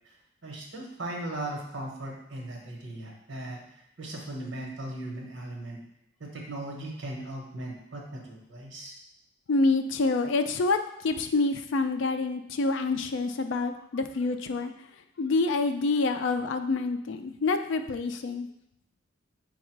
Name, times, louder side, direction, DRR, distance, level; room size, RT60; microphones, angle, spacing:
voice 1, 0.4-3.6 4.0-5.8 6.2-8.9, right 1 dB, 80° right, -1 dB, 1.1 m, -38 dB
voice 2, 9.5-14.7 15.2-18.5, left 3 dB, 75° left, 8 dB, 0.4 m, -27 dB
4.6 x 2.3 x 4.5 m, 0.78 s
head